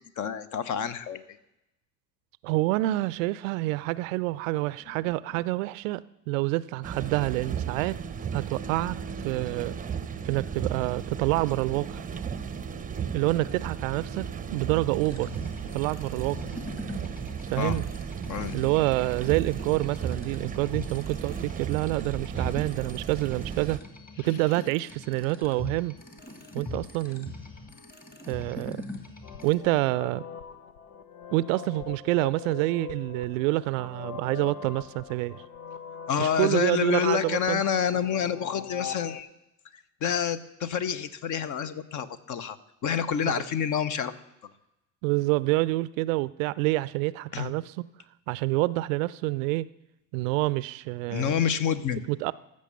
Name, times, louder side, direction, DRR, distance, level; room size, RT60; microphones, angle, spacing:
voice 1, 0.2-1.2 17.6-17.8 18.3-18.5 22.4-22.5 36.1-39.3 39.7-42.6 42.8-44.1 47.3-47.5 51.1-52.0, left 8 dB, 40° left, 14 dB, 0.9 m, -28 dB
voice 2, 2.4-6.0 6.3-7.9 8.3-9.0 9.2-9.7 10.2-12.0 13.1-14.2 14.5-15.3 15.7-16.5 17.5-17.8 18.5-23.8 24.2-25.9 26.5-27.3 28.3-28.8 29.4-30.2 31.3-35.4 36.2-37.6 45.0-47.9 48.3-49.7 50.1-51.3 52.1-52.3, right 20 dB, 55° right, 19 dB, 0.5 m, -27 dB
sound 1, 6.8-23.8, right 7 dB, 15° right, 0.7 m, -35 dB
sound 2, 15.0-29.6, left 2 dB, 20° left, 2.2 m, -42 dB
sound 3, 29.2-39.2, left 8 dB, 70° left, 1.0 m, -42 dB
14.5 x 6.4 x 6.9 m, 0.88 s
figure-of-eight pair, 65°, 48 cm